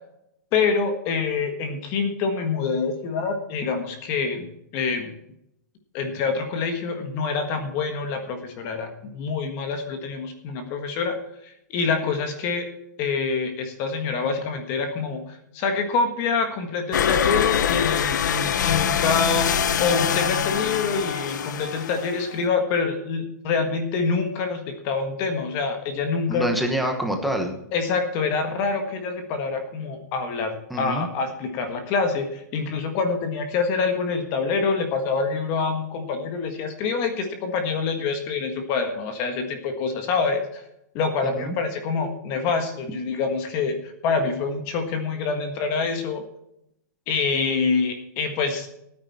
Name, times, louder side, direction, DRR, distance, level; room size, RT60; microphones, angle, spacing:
voice 1, 0.5-4.5 4.7-5.1 5.9-11.1 11.4-12.7 13.0-26.5 27.7-40.6 40.9-46.2 47.1-48.7, left 4 dB, 25° left, 6 dB, 1.6 m, -26 dB
sound 1, 16.9-22.4, left 8 dB, 75° left, 0.9 m, -24 dB
voice 2, 26.3-27.6 30.7-31.1 41.2-41.5, right 1 dB, ahead, 3 dB, 1.1 m, -26 dB
16.0 x 9.5 x 4.3 m, 0.79 s
hypercardioid pair, 170°, 10 cm